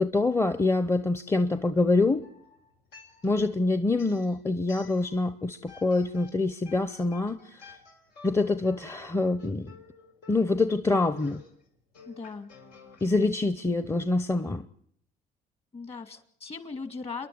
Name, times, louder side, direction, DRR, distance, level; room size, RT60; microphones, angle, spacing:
voice 1, 0.0-2.2 3.2-7.7 8.2-9.7 10.3-11.4 13.0-14.6, left 3 dB, 15° left, 11 dB, 0.8 m, -25 dB
sound 1, 2.2-3.5 3.9-5.3 5.7-13.1, left 5 dB, 85° left, 4.5 m, -52 dB
voice 2, 12.1-12.5 15.7-17.3, left 4 dB, 35° left, 10 dB, 2.4 m, -38 dB
28.5 x 11.5 x 9.5 m, 0.70 s
cardioid pair, 110°, 17 cm